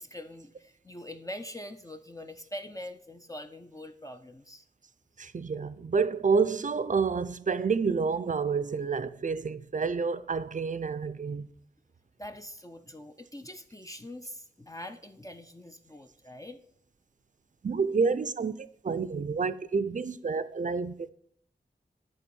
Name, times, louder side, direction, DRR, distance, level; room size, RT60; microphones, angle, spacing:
voice 1, 0.0-4.6 12.2-16.6, left 1 dB, 20° left, 0.6 m, -43 dB
voice 2, 5.2-11.5 17.6-20.9, right 5 dB, 45° right, 0.5 m, -29 dB
11.0 x 4.0 x 7.0 m
wide cardioid pair, 90°, 17 cm